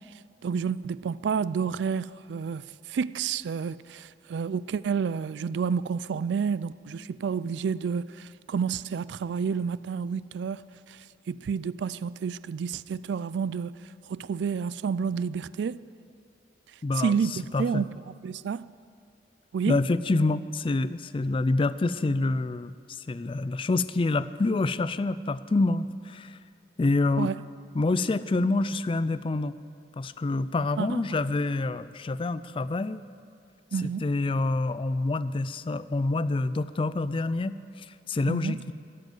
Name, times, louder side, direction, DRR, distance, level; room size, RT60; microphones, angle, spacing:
voice 1, 0.4-13.7 14.1-15.8 17.0-18.0 18.2-18.6 19.5-19.8 27.2-27.4 30.8-31.0 33.7-34.1 38.3-38.6, right 6 dB, 65° right, 0.3 m, -30 dB
voice 2, 16.8-17.2 17.5-17.8 19.7-26.4 26.8-27.3 27.7-29.5 30.0-33.0 33.8-38.7, left 2 dB, 30° left, 0.4 m, -27 dB
14.0 x 7.7 x 9.4 m
head